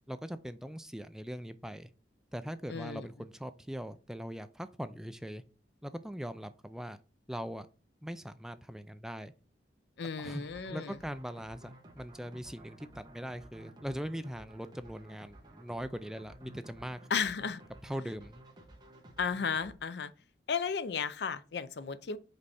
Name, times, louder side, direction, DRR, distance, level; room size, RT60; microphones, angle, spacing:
voice 1, 0.1-1.9 2.3-5.4 5.8-7.0 7.3-7.7 8.0-9.3 10.2-10.4 10.7-17.0 17.8-18.4, equal, 5° right, 0.3 m, -41 dB
voice 2, 2.7-3.1 10.0-11.0 17.1-17.6 19.2-20.1 20.5-22.2, left 6 dB, 70° left, 0.5 m, -34 dB
sound 1, 10.4-19.7, right 1 dB, 25° right, 1.2 m, -54 dB
5.2 x 4.6 x 4.2 m
head